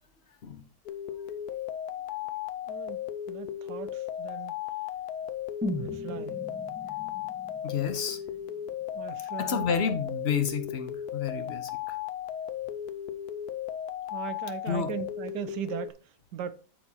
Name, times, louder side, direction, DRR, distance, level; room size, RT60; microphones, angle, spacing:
sound 1, 0.9-15.9, left 10 dB, 70° left, 1.1 m, -36 dB
voice 1, 2.7-3.0 3.3-4.5 5.8-6.4 8.9-9.7 14.1-15.9 16.3-16.5, right 9 dB, 85° right, 1.3 m, -38 dB
sound 2, 5.6-9.6 9.9-10.0, left 1 dB, 15° right, 0.3 m, -39 dB
voice 2, 7.6-8.2 9.4-12.0 14.7-14.9, left 6 dB, 50° left, 0.9 m, -30 dB
12.5 x 4.5 x 2.8 m
omnidirectional pair, 1.8 m